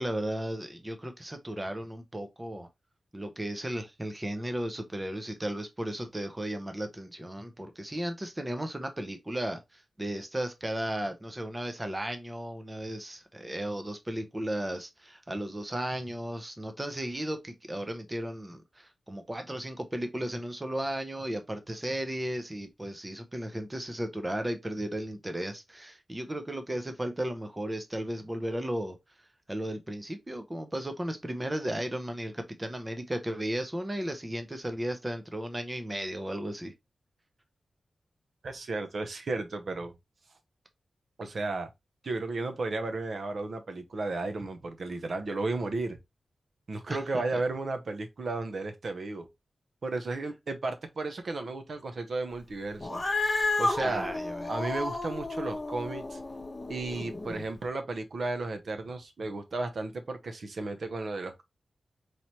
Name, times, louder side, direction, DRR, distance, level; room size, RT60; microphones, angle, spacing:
voice 1, 0.0-2.7 3.1-29.0 29.5-36.7 46.9-47.4 53.8-54.5, right 1 dB, 15° right, 0.6 m, -35 dB
voice 2, 38.4-39.9 41.2-41.7 42.0-46.0 46.7-49.3 49.8-53.0 53.6-54.1 54.5-56.2 56.7-61.4, right 3 dB, 55° right, 0.7 m, -34 dB
Cat, 52.8-57.4, left 2 dB, 25° left, 0.8 m, -32 dB
4.2 x 3.2 x 2.9 m
wide cardioid pair, 145°, 0 cm